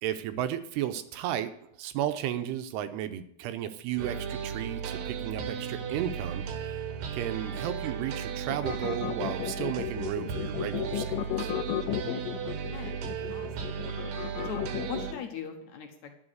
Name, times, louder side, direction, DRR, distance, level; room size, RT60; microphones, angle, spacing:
voice 1, 0.0-1.5 1.8-6.8 7.1-11.5, right 11 dB, 85° right, 10 dB, 2.7 m, -34 dB
sound 1, 4.0-15.1, right 7 dB, 65° right, 2.4 m, -35 dB
sound 2, 8.5-15.2, left 14 dB, 90° left, 1.9 m, -34 dB
voice 2, 12.4-13.9 14.4-16.2, left 7 dB, 70° left, 4 dB, 1.8 m, -41 dB
11.0 x 7.2 x 7.9 m, 0.71 s
omnidirectional pair, 4.8 m